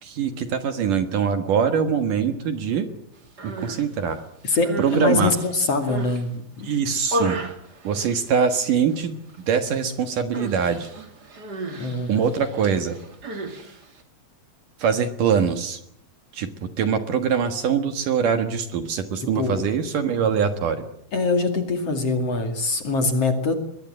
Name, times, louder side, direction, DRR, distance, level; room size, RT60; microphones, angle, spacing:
voice 1, 0.0-2.9 3.4-4.2 4.8-5.3 6.6-7.4 7.8-9.2 9.5-10.9 12.1-13.0 14.8-15.8 16.3-20.9, right 7 dB, 60° right, 8 dB, 2.7 m, -23 dB
Human voice, 3.2-3.9 4.4-6.2 6.7-8.7 8.9-9.4 9.6-9.9 10.3-14.0, right 1 dB, 30° right, 2.5 m, -34 dB
voice 2, 4.4-6.7 11.8-12.1 19.3-19.7 21.1-23.5, left 3 dB, 40° left, 6 dB, 2.9 m, -23 dB
23.5 x 21.5 x 7.7 m, 0.73 s
omnidirectional pair, 4.7 m